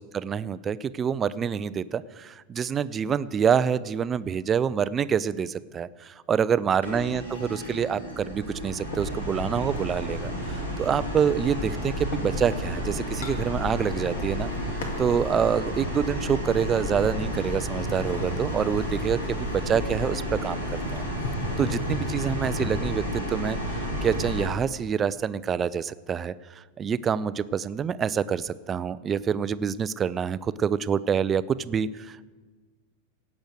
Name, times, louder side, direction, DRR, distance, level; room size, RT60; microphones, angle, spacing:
voice 1, 0.0-14.5 15.0-20.7 20.9-21.0 21.6-32.2, right 7 dB, 25° right, 17 dB, 0.4 m, -27 dB
sound 1, 6.8-24.5, equal, 75° left, 3.4 m, -31 dB
sound 2, 8.9-9.8 10.3-12.4 12.8-14.1 14.3-15.2 15.7-17.4 17.7-22.7, left 2 dB, 55° left, 1.9 m, -38 dB
16.5 x 6.2 x 7.7 m, 1.4 s
figure-of-eight pair, 90°, 0 cm